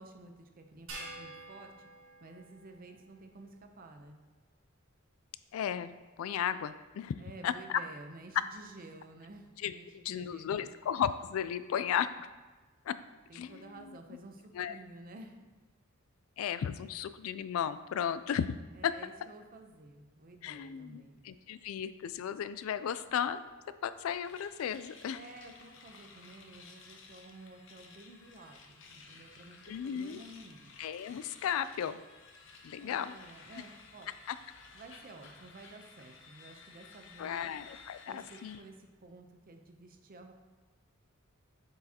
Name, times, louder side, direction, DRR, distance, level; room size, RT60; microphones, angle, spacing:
voice 1, 0.0-1.9 2.2-4.2 7.2-10.7 13.3-15.4 18.7-21.2 25.1-29.6 29.8-30.7 32.8-34.1 34.7-37.5 38.1-40.3, right 2 dB, 45° right, 5 dB, 0.6 m, -52 dB
sound 1, 0.9-3.4, right 2 dB, 70° right, 1.5 m, -48 dB
voice 2, 5.5-5.9 6.2-7.1 7.4-7.8 9.6-12.3 12.9-13.0 13.3-14.0 14.5-14.8 16.4-18.5 18.8-18.9 20.4-23.4 23.8-25.2 29.7-30.2 30.8-32.0 32.6-33.1 34.3-34.4 37.2-38.6, left 8 dB, 85° left, 13 dB, 0.3 m, -35 dB
sound 2, 24.2-38.6, left 4 dB, 65° left, 0.7 m, -55 dB
7.7 x 4.7 x 2.8 m, 1.3 s
head